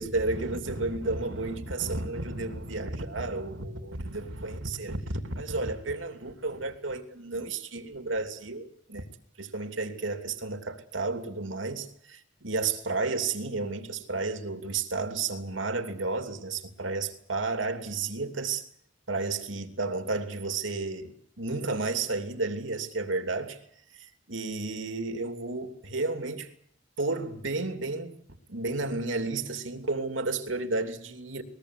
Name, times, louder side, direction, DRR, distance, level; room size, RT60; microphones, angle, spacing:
voice 1, 0.0-5.0 5.2-9.1 9.4-18.6 19.1-23.6 23.9-26.5 27.0-28.1 28.5-31.4, right 3 dB, 80° right, 2.8 m, -32 dB
21.0 x 21.0 x 8.3 m
head